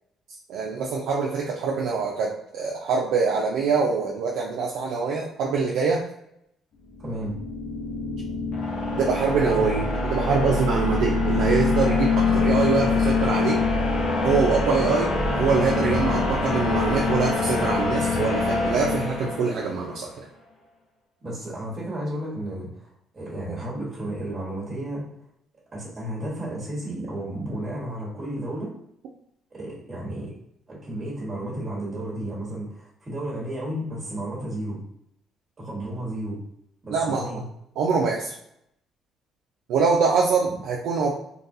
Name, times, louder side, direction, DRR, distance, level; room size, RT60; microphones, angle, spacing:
voice 1, 0.5-6.0 9.0-9.8 10.1-13.6 14.2-20.1 36.9-37.3 37.8-38.3 39.7-41.1, right 5 dB, 85° right, -3 dB, 0.5 m, -24 dB
sound 1, 6.9-19.9, left 3 dB, 90° left, 0.8 m, -24 dB
voice 2, 7.0-7.3 9.4-9.8 21.2-25.0 25.7-28.7 29.5-30.3 30.7-34.8 35.6-36.4 36.8-37.4 40.4-40.5, right 1 dB, 25° right, -6 dB, 1.4 m, -32 dB
3.9 x 2.3 x 2.6 m, 0.76 s
cardioid pair, 130°, 0 cm